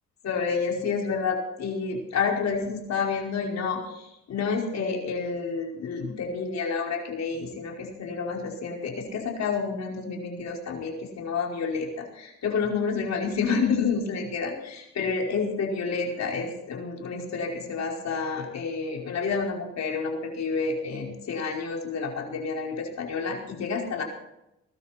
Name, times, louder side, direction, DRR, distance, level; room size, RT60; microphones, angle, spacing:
voice 1, 0.2-24.0, left 5 dB, 60° left, 0 dB, 5.1 m, -29 dB
20.5 x 13.0 x 4.4 m, 0.85 s
cardioid pair, 90°, 30 cm